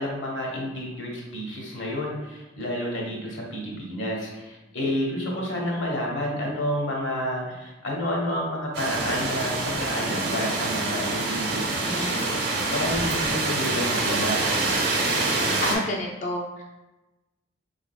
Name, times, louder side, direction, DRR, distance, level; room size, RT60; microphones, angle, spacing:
voice 1, 0.0-14.4, equal, 85° left, -2 dB, 1.0 m, -30 dB
sound 1, 8.7-15.8, right 2 dB, 60° right, 0.7 m, -26 dB
voice 2, 15.6-16.6, left 1 dB, 40° left, 0 dB, 0.3 m, -29 dB
3.8 x 3.5 x 2.2 m, 1.1 s
head